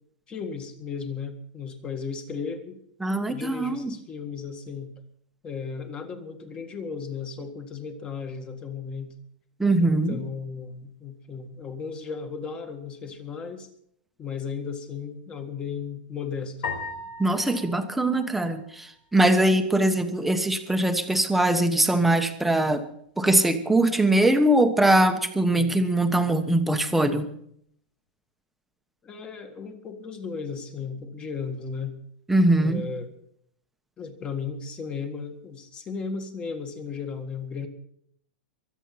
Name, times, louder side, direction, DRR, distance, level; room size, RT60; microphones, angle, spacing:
voice 1, 0.3-2.8 3.3-4.9 5.4-9.1 9.8-13.7 14.2-16.6 25.5-25.8 29.0-32.0 32.6-33.1 34.0-37.7, left 5 dB, 20° left, 7 dB, 1.8 m, -35 dB
voice 2, 3.0-3.9 9.6-10.2 17.2-22.8 23.2-27.3 32.3-32.8, right 1 dB, 5° right, 6 dB, 1.2 m, -22 dB
sound 1, 16.6-19.1, left 4 dB, 65° left, 4.7 m, -38 dB
23.5 x 8.3 x 5.9 m, 0.69 s
supercardioid pair, 155°, 5 cm